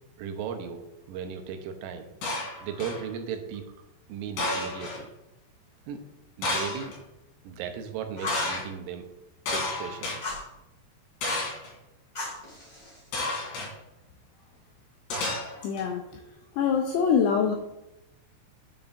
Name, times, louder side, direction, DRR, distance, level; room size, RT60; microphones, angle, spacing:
voice 1, 0.2-2.1 2.6-5.1 5.9-6.0 6.4-7.0 7.4-9.1 9.5-10.1, right 7 dB, 85° right, 6 dB, 3.3 m, -36 dB
sound 1, 2.2-3.0 4.4-5.0 6.4-7.0 8.3-8.6 9.5-10.2 11.2-11.7 13.1-13.7 15.1-15.8, left 2 dB, 65° left, 4.7 m, -31 dB
Fire, 8.1-8.5 10.2-10.5 12.1-13.1, left 2 dB, 30° left, 1.6 m, -37 dB
voice 2, 15.6-16.0 16.6-17.6, left 6 dB, 90° left, 2 dB, 2.4 m, -24 dB
9.5 x 7.1 x 2.6 m, 0.92 s
omnidirectional pair, 5.6 m